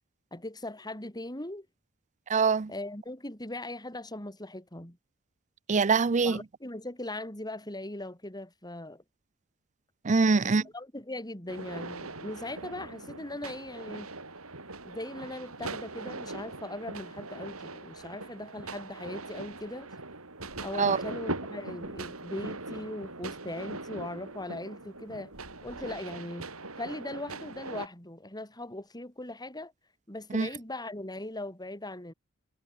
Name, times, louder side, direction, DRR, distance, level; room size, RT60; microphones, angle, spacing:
voice 1, 0.3-1.7 2.7-5.0 6.2-9.0 10.5-14.1 14.8-19.9 20.6-25.3 25.6-26.5 26.8-29.7 30.1-32.1, left 1 dB, 20° left, 7.2 m, -39 dB
voice 2, 2.3-2.7 5.7-6.4 10.0-10.7 20.8-21.0 30.3-30.5, right 4 dB, 35° right, 0.5 m, -23 dB
New year celebrations fireworks, 11.5-27.9, right 2 dB, 80° right, 7.2 m, -41 dB
head